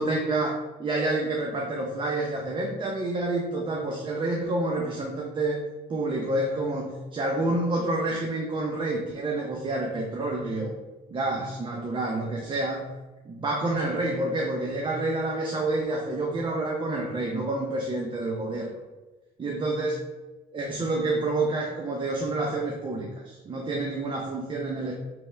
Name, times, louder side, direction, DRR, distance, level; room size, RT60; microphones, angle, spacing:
voice 1, 0.0-5.6 5.9-10.7 11.1-12.9 13.3-18.7 19.4-20.0 20.5-24.9, right 2 dB, 30° right, -1 dB, 0.7 m, -28 dB
3.5 x 3.3 x 4.3 m, 1.1 s
cardioid pair, 110°, 17 cm